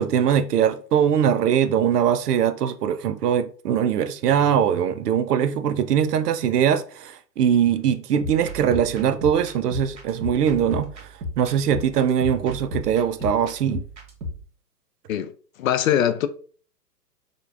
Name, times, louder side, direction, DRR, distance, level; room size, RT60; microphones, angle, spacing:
voice 1, 0.0-10.9 11.4-13.8, right 8 dB, 70° right, 0.6 m, -21 dB
sound 1, 8.1-14.4, left 2 dB, 85° right, 1.1 m, -35 dB
voice 2, 15.6-16.3, left 10 dB, 55° left, 0.5 m, -21 dB
5.0 x 2.2 x 2.4 m
hypercardioid pair, 125°, 50 cm